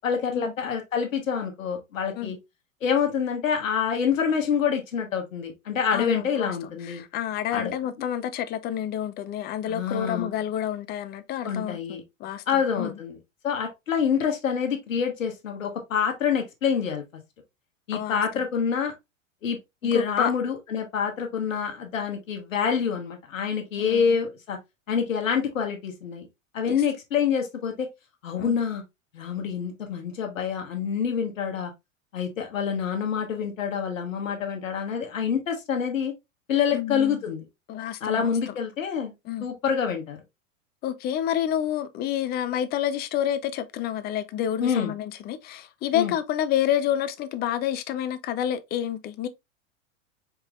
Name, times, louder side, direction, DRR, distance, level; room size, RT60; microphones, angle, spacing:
voice 1, 0.0-2.4 2.8-7.0 7.5-7.7 9.6-10.3 11.4-12.0 12.5-13.2 13.4-17.0 17.9-18.9 19.4-19.6 19.8-24.6 24.9-26.3 26.5-27.9 28.2-28.8 29.1-31.7 32.1-36.1 36.5-37.4 38.0-39.1 39.4-40.2 44.6-44.9 45.9-46.1, left 7 dB, 75° left, 1.2 m, -26 dB
voice 2, 5.9-12.9 17.9-18.4 19.9-20.3 23.8-24.2 26.7-26.8 28.4-28.6 36.7-37.2 37.7-38.6 39.3-39.5 40.8-49.3, left 10 dB, 25° left, 0.5 m, -29 dB
4.6 x 3.7 x 2.3 m
hypercardioid pair, 95°, 39 cm